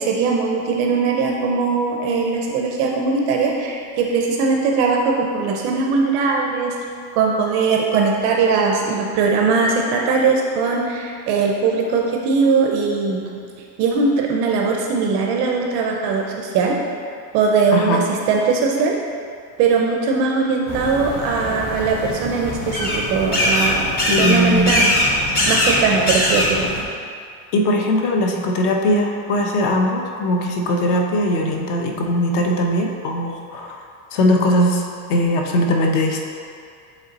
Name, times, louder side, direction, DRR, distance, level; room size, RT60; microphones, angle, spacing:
voice 1, 0.0-6.8 7.2-13.2 13.8-16.8 17.3-19.0 19.6-24.9 25.5-26.7, right 4 dB, 40° right, 0 dB, 0.4 m, -20 dB
voice 2, 17.7-18.0 24.1-24.8 27.5-33.8 34.1-34.8 35.1-36.2, left 1 dB, 55° left, 2 dB, 0.8 m, -19 dB
sound 1, 20.7-26.8, left 1 dB, 25° left, 0.6 m, -21 dB
7.6 x 3.2 x 3.9 m, 2.3 s
cardioid pair, 175°, 44 cm